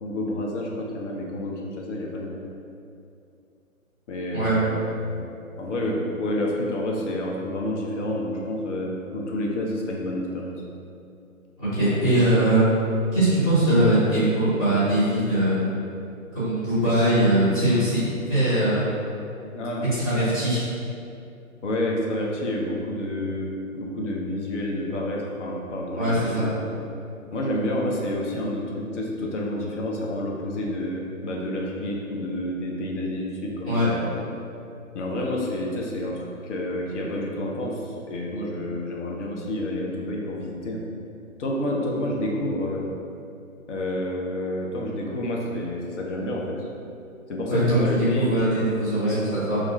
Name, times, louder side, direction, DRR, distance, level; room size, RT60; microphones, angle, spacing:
voice 1, 0.0-2.4 4.1-5.2 5.6-10.5 19.5-19.9 21.6-26.8 27.3-34.2 34.9-36.2 36.4-37.8 38.1-40.8 41.4-42.9 43.7-46.6 47.3-48.4 49.0-49.2, left 1 dB, 55° left, -2 dB, 0.6 m, -29 dB
voice 2, 11.6-12.7 13.1-15.6 16.3-18.9 20.0-20.6 26.0-26.5 33.6-33.9 47.5-49.6, right 1 dB, 25° left, -15 dB, 1.1 m, -21 dB
2.4 x 2.2 x 2.9 m, 2.6 s
figure-of-eight pair, 145°, 43 cm